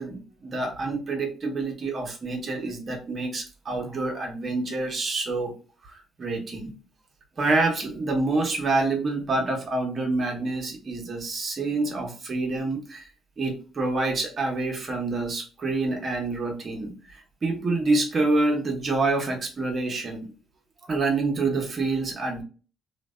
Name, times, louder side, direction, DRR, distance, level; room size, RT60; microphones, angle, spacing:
voice 1, 0.0-5.5 5.8-6.7 7.4-13.1 13.4-20.3 20.9-22.4, right 3 dB, 45° right, 2 dB, 0.8 m, -27 dB
2.5 x 2.2 x 2.2 m, 0.36 s
supercardioid pair, 55°, 0 cm